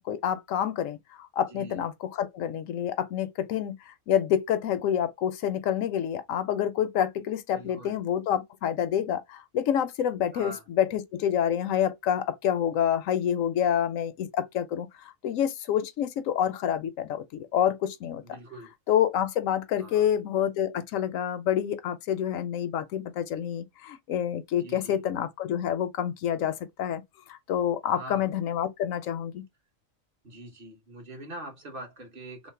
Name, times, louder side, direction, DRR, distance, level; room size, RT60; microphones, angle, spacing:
voice 1, 0.0-18.2 18.9-27.0 27.3-29.4, left 9 dB, 75° left, 0.9 m, -28 dB
voice 2, 1.5-1.8 7.5-8.0 10.3-10.6 18.2-18.7 19.8-20.1 24.6-25.0 27.8-28.3 30.2-32.5, right 1 dB, 45° right, 1.3 m, -43 dB
3.1 x 2.1 x 4.2 m
omnidirectional pair, 1.4 m